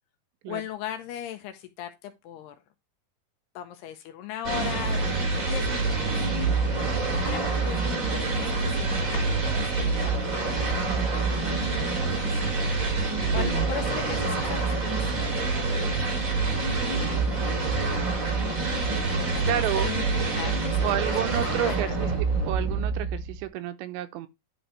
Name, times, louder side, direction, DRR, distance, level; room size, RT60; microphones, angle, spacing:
voice 1, 0.5-2.6 3.6-5.1 5.5-6.3 7.3-10.1 10.6-12.7 13.0-15.4 16.0-16.3 17.3-17.8 19.4-20.8 21.6-22.0, left 10 dB, 80° left, 2.5 m, -39 dB
sound 1, 4.4-23.5, right 3 dB, 45° right, 1.1 m, -26 dB
voice 2, 13.2-13.6 19.5-19.9 20.8-22.1 22.5-24.3, right 12 dB, 85° right, 3.0 m, -30 dB
11.0 x 4.6 x 3.3 m
omnidirectional pair, 5.3 m